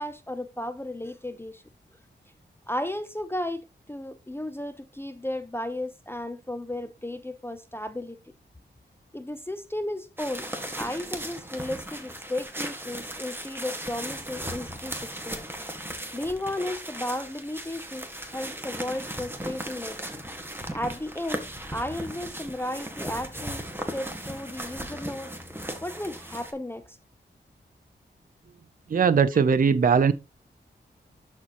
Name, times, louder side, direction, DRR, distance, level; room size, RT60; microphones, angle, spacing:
voice 1, 0.0-1.6 2.7-8.2 9.1-10.5 10.7-15.4 16.1-20.0 20.7-21.5 21.7-25.3 25.8-27.0, left 1 dB, 10° left, 0.6 m, -34 dB
sound 1, 10.2-26.5, right 1 dB, 10° right, 1.7 m, -37 dB
voice 2, 28.9-30.1, right 6 dB, 45° right, 0.5 m, -20 dB
12.0 x 4.2 x 3.0 m
cardioid pair, 60°, 19 cm